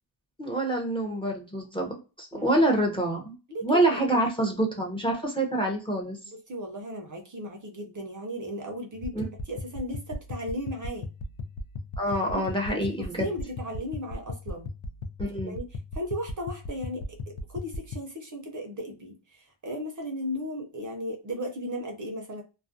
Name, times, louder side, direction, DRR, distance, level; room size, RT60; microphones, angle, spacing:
voice 1, 0.4-3.3 3.6-6.2 9.1-9.3 12.0-13.3 15.2-15.6, right 1 dB, 10° left, 0 dB, 0.6 m, -26 dB
voice 2, 2.3-2.6 3.5-4.2 6.3-9.1 9.5-11.1 12.0-14.7 15.4-15.7 15.9-22.4, equal, 40° right, 3 dB, 0.6 m, -36 dB
sound 1, 8.9-18.0, left 2 dB, 80° left, 0.6 m, -38 dB
2.4 x 2.1 x 2.4 m, 0.32 s
wide cardioid pair, 125°, 48 cm